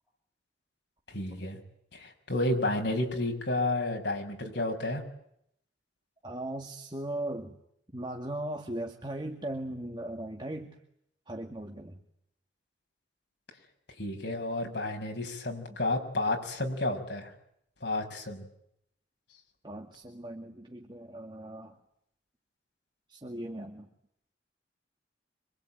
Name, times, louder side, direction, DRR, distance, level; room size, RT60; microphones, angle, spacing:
voice 1, 1.1-1.6 1.9-5.0 14.0-17.3 17.8-18.5, left 2 dB, 70° left, 2 dB, 6.6 m, -31 dB
voice 2, 6.2-7.6 7.9-10.8 11.3-12.0 19.6-21.8 23.1-23.9, right 1 dB, 25° right, 3 dB, 2.1 m, -38 dB
26.5 x 24.5 x 9.2 m, 0.73 s
head